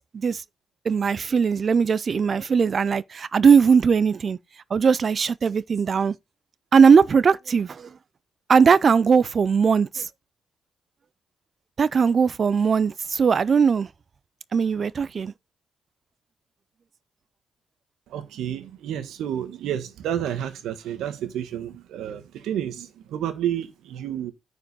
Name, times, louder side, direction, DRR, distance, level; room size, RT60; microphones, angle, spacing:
voice 1, 0.9-4.4 4.7-6.1 6.7-7.9 8.5-10.1 11.8-13.9 14.5-15.3, right 6 dB, 50° right, 0.4 m, -19 dB
voice 2, 18.1-24.3, right 10 dB, 80° right, 1.4 m, -30 dB
9.6 x 5.1 x 4.1 m
supercardioid pair, 65°, 0 cm